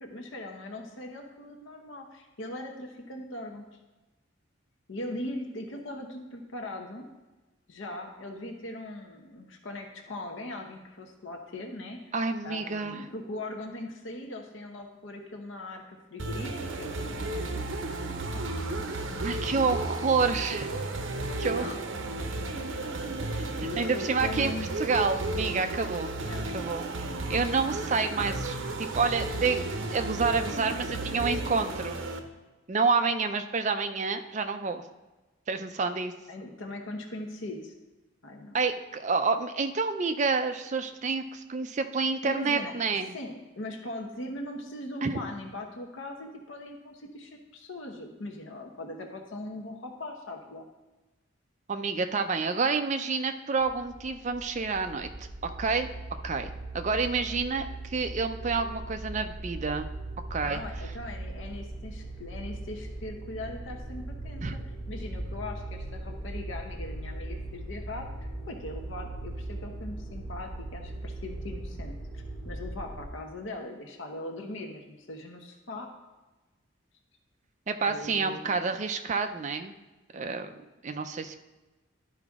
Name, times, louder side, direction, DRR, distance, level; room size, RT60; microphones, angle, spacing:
voice 1, 0.0-3.6 4.9-7.0 7.7-12.2 12.4-17.7 18.3-19.0 21.4-22.1 23.0-23.1 23.5-24.7 26.2-26.5 36.3-37.7 38.2-38.6 42.2-42.8 43.1-50.7 60.4-64.4 64.9-75.9 77.9-78.4, left 1 dB, 70° left, 3 dB, 0.9 m, -40 dB
voice 2, 12.1-13.0 19.2-20.8 21.4-21.7 23.3-23.4 23.8-26.1 26.5-32.0 32.7-34.8 35.5-36.1 38.5-43.1 45.0-45.2 51.7-55.1 55.4-55.9 56.2-56.5 56.7-59.9 60.3-60.6 64.4-64.6 77.7-79.7 80.1-81.4, right 4 dB, 35° right, 7 dB, 0.4 m, -29 dB
sound 1, 16.2-32.2, right 2 dB, 75° right, 0.8 m, -33 dB
sound 2, 53.6-73.1, right 1 dB, 10° left, 1.4 m, -39 dB
12.0 x 4.9 x 3.6 m, 1.1 s
head